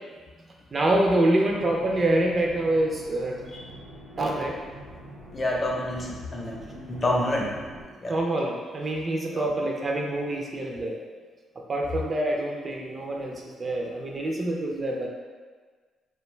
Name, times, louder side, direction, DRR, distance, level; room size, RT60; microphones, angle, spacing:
voice 1, 0.7-3.4 4.2-4.6 8.1-11.0 11.7-13.3 13.6-15.1, right 1 dB, 35° right, 0 dB, 0.4 m, -26 dB
sound 1, 1.5-7.8, right 1 dB, 75° right, 1.0 m, -45 dB
voice 2, 5.3-7.7 8.0-8.2 9.3-9.4, left 1 dB, 30° left, -1 dB, 0.5 m, -28 dB
2.4 x 2.2 x 3.1 m, 1.5 s
cardioid pair, 90°, 0 cm